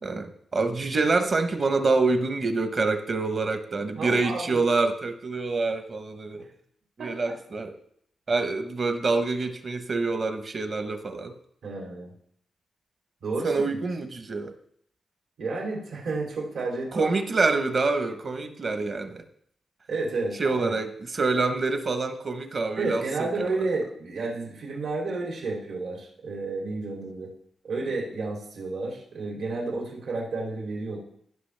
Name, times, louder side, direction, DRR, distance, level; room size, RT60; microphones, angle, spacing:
voice 1, 0.0-6.4 7.0-7.7 8.3-11.3 13.4-14.5 16.9-19.2 20.4-23.3, right 3 dB, 35° right, 8 dB, 0.8 m, -26 dB
voice 2, 3.8-4.6 6.3-6.4 7.0-7.4 11.6-12.1 13.2-13.9 15.4-17.2 19.9-20.8 22.8-27.3 27.6-31.0, right 3 dB, 75° right, -2 dB, 2.9 m, -31 dB
16.0 x 5.9 x 3.3 m, 0.67 s
wide cardioid pair, 170°, 0 cm